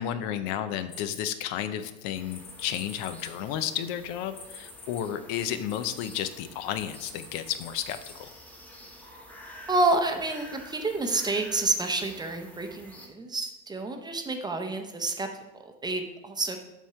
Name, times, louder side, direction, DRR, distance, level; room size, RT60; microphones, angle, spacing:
voice 1, 0.0-8.3, left 10 dB, 70° left, 11 dB, 0.6 m, -32 dB
sound 1, 0.9-1.7 2.3-6.2 6.7-8.1, left 4 dB, 55° left, 2.5 m, -46 dB
sound 2, 2.1-13.1, equal, 5° left, 1.0 m, -49 dB
voice 2, 9.7-16.6, right 2 dB, 15° right, 5 dB, 0.6 m, -29 dB
7.3 x 3.6 x 5.6 m, 0.99 s
supercardioid pair, 125°, 30 cm